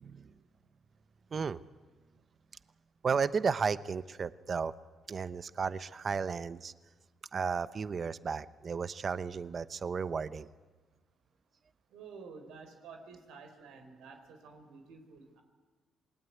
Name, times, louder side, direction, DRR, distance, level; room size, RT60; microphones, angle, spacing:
voice 1, 0.0-0.3 1.3-1.6 3.0-4.7 5.1-6.7 7.3-10.5, right 5 dB, 45° right, 15 dB, 0.9 m, -33 dB
voice 2, 11.9-15.4, right 5 dB, 90° right, 5 dB, 4.5 m, -51 dB
27.5 x 20.5 x 9.5 m, 1.3 s
cardioid pair, 90°, 0 cm